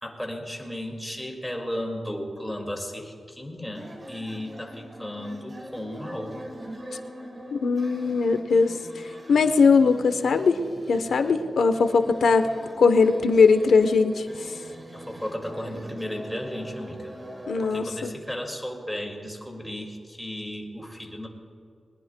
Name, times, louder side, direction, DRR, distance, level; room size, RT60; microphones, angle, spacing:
voice 1, 0.0-6.4 14.6-17.1 17.6-21.3, left 1 dB, 5° left, 1 dB, 2.2 m, -35 dB
sound 1, 3.7-17.7, right 1 dB, 25° right, 1.4 m, -42 dB
voice 2, 7.6-8.8 9.3-10.6 10.9-12.5 12.8-14.3 17.5-18.1, left 4 dB, 80° left, 9 dB, 0.8 m, -20 dB
21.0 x 20.5 x 2.3 m, 2.3 s
wide cardioid pair, 130°, 0 cm